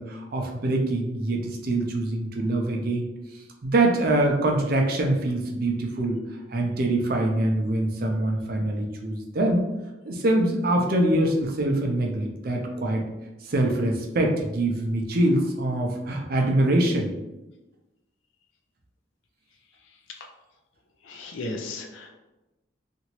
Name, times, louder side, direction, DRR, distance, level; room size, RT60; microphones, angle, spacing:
voice 1, 0.0-6.2 6.5-9.7 10.0-13.0 13.4-17.1, right 1 dB, 50° right, 2 dB, 0.4 m, -24 dB
voice 2, 21.0-22.1, left 2 dB, 85° left, 3 dB, 0.5 m, -35 dB
2.9 x 2.5 x 2.9 m, 1.0 s
head